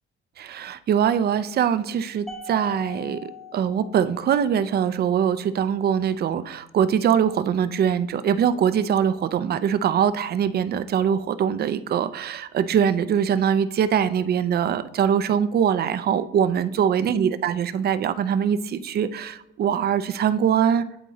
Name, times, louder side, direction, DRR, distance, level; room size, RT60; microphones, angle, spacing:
voice 1, 0.4-20.8, right 8 dB, 55° right, 13 dB, 0.4 m, -23 dB
Mallet percussion, 2.3-4.7, left 4 dB, 5° left, 0.9 m, -40 dB
9.3 x 3.7 x 4.0 m, 0.82 s
cardioid pair, 90°, 20 cm